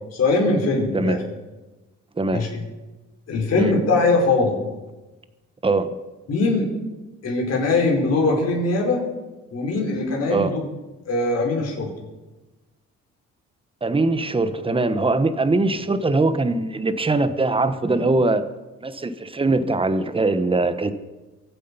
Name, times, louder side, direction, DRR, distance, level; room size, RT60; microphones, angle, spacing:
voice 1, 0.1-1.2 2.3-2.5 3.3-4.6 6.3-6.7 7.2-9.0 9.5-10.6 11.0-11.9, left 3 dB, 55° left, -1 dB, 5.0 m, -21 dB
voice 2, 2.2-2.5 3.6-3.7 5.6-5.9 10.3-10.6 13.8-18.4 18.8-20.9, right 3 dB, 20° right, 11 dB, 1.1 m, -21 dB
23.5 x 8.4 x 5.6 m, 1.1 s
cardioid pair, 90°, 30 cm